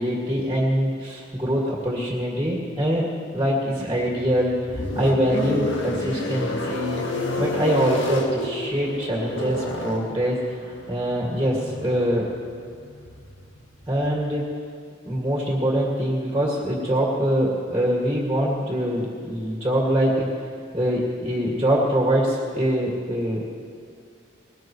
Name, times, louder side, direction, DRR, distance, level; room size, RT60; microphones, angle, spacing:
voice 1, 0.0-3.1 3.3-7.0 7.4-10.6 10.9-12.3 13.9-14.5 15.0-20.3 20.7-23.4, equal, 15° right, -3 dB, 2.2 m, -24 dB
sound 1, 4.0-14.2, left 1 dB, 70° left, 1.7 m, -30 dB
20.5 x 19.0 x 3.2 m, 2.2 s
head